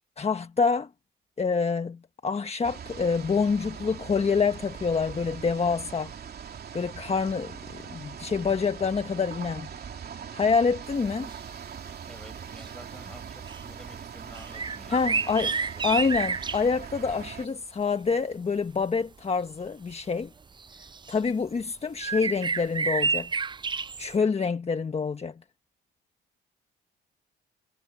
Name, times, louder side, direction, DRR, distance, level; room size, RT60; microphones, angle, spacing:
voice 1, 0.2-0.9 1.4-6.1 6.7-9.7 10.3-11.3 14.9-15.5 15.8-20.3 20.8-23.3 24.0-25.3, left 5 dB, 30° left, 1.4 m, -27 dB
sound 1, 2.6-17.5, right 7 dB, 50° right, 2.9 m, -41 dB
sound 2, 11.3-11.4 11.8-11.9 12.4-13.0 13.4-13.6 14.3-16.7 18.8-18.9 19.9-20.0 20.6-21.2 22.0-24.2, right 4 dB, 25° right, 0.5 m, -30 dB
voice 2, 12.1-15.9, equal, 5° left, 6.0 m, -49 dB
cardioid pair, 90°, 20 cm